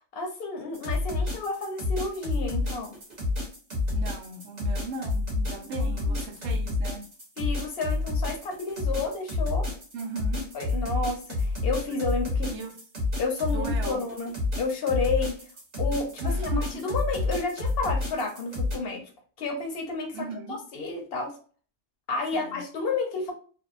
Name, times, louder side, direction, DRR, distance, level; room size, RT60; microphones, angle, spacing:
voice 1, 0.0-3.0 5.6-6.1 7.4-9.7 10.5-12.5 13.2-15.4 15.8-19.0 19.4-21.3 22.1-23.3, left 3 dB, 65° left, 3 dB, 0.7 m, -31 dB
sound 1, 0.7-18.8, left 3 dB, 40° right, 1.0 m, -29 dB
voice 2, 3.9-7.1 9.9-10.5 11.9-12.0 12.5-12.8 13.5-14.0 16.2-16.9 20.1-20.6 22.3-22.6, right 3 dB, 85° right, 4 dB, 0.9 m, -37 dB
2.6 x 2.0 x 2.4 m, 0.41 s
omnidirectional pair, 1.2 m